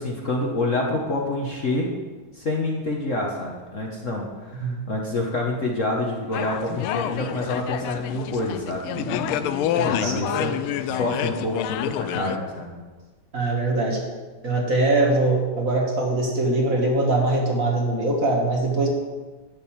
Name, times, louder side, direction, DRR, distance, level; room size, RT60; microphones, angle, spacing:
voice 1, 0.0-1.9 2.3-12.8, left 2 dB, 40° left, -1 dB, 1.4 m, -27 dB
sound 1, 6.3-12.4, left 11 dB, 90° left, 1.5 m, -28 dB
voice 2, 9.7-10.2 13.3-14.0 14.4-18.9, right 2 dB, 40° right, -1 dB, 2.1 m, -22 dB
12.0 x 5.4 x 8.7 m, 1.3 s
omnidirectional pair, 2.3 m